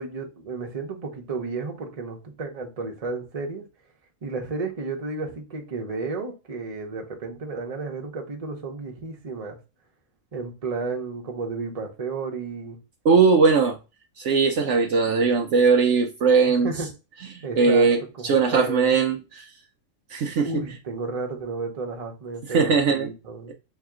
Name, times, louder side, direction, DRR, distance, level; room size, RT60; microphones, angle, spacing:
voice 1, 0.0-3.6 4.2-9.6 10.3-12.8 16.5-16.9 17.4-19.0 20.4-23.5, right 3 dB, 30° right, 0.9 m, -32 dB
voice 2, 13.0-13.8 14.2-16.7 17.6-18.0 18.2-19.4 20.1-20.5 22.5-23.1, right 5 dB, 70° right, 0.9 m, -19 dB
4.0 x 2.8 x 3.6 m
omnidirectional pair, 1.4 m